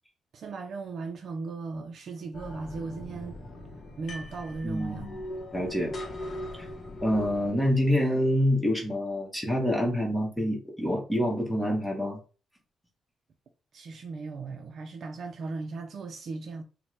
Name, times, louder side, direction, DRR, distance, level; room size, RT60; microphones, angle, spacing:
voice 1, 0.3-3.4 4.0-5.2 13.7-16.6, right 4 dB, 55° right, 0.4 m, -37 dB
sound 1, 2.3-7.5, left 1 dB, 45° left, 0.7 m, -40 dB
voice 2, 4.6-5.2 5.5-5.9 6.6-6.7 7.0-12.2, equal, 5° left, 0.9 m, -27 dB
4.1 x 2.1 x 3.0 m
cardioid pair, 135°, 0 cm